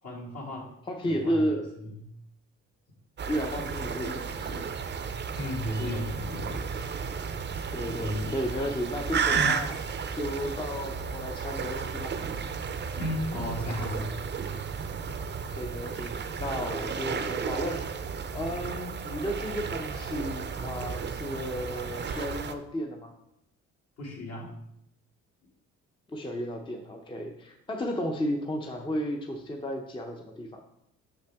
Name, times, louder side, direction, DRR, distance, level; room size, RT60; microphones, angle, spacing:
voice 1, 0.0-0.7 1.0-1.5 1.8-2.0 3.5-3.7 5.4-6.9 7.4-7.7 8.0-8.3 9.3-9.6 13.0-14.1 24.0-24.5, left 1 dB, 55° left, -3 dB, 2.2 m, -34 dB
voice 2, 0.9-1.7 3.3-4.7 7.7-9.7 10.1-12.2 15.5-17.8 18.3-23.1 26.1-30.6, equal, 15° left, 2 dB, 0.6 m, -33 dB
sound 1, 3.2-22.5, right 6 dB, 35° right, 0.5 m, -33 dB
5.9 x 5.7 x 3.5 m, 0.78 s
cardioid pair, 90°, 30 cm